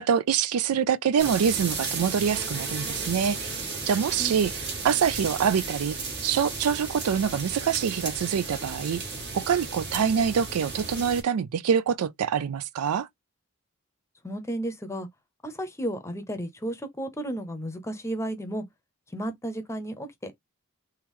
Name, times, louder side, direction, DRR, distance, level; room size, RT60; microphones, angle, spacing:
voice 1, 0.0-6.0 6.2-9.0 9.3-13.1, right 7 dB, 85° right, 0.4 m, -25 dB
sound 1, 1.2-11.2, right 4 dB, 50° right, 1.5 m, -34 dB
voice 2, 14.2-15.1 15.4-18.6 19.1-20.4, right 1 dB, 15° left, 0.7 m, -33 dB
3.7 x 2.9 x 3.1 m
head